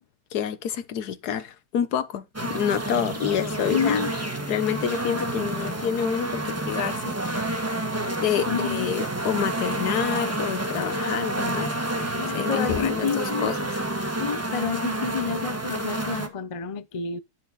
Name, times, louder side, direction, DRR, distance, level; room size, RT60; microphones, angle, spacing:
voice 1, 0.3-2.2 2.5-4.0 4.5-7.6 8.2-11.7 12.0-13.7, left 8 dB, 75° left, 1.5 m, -28 dB
sound 1, 2.3-16.3, right 1 dB, 10° right, 1.2 m, -29 dB
voice 2, 3.7-4.1 8.5-8.9 12.2-13.5 14.2-17.2, left 7 dB, 60° left, 0.3 m, -29 dB
10.5 x 6.7 x 4.1 m
omnidirectional pair, 1.7 m